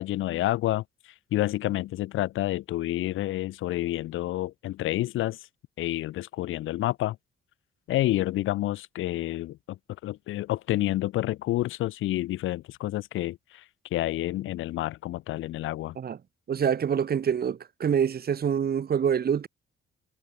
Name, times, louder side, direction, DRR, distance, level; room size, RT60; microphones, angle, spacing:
voice 1, 0.0-5.5 5.8-7.2 7.9-13.6 13.9-16.0, left 15 dB, 90° left, 3.2 m, -29 dB
voice 2, 16.5-19.5, right 8 dB, 50° right, 2.8 m, -26 dB
cardioid pair, 90°, 20 cm